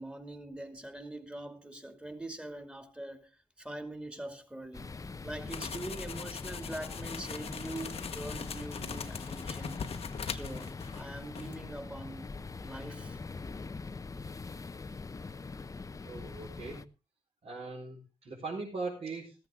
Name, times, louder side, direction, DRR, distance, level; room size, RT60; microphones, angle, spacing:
voice 1, 0.0-3.3 3.6-9.8 10.3-12.2 12.6-13.2, right 1 dB, 10° right, 2.5 m, -43 dB
sound 1, 4.7-16.8, left 4 dB, 25° left, 0.7 m, -42 dB
sound 2, 5.5-11.1 11.3-11.5, left 7 dB, 55° left, 1.1 m, -42 dB
voice 2, 16.0-16.8 17.4-19.3, right 3 dB, 55° right, 4.6 m, -40 dB
14.5 x 14.0 x 3.7 m
cardioid pair, 85°, 12 cm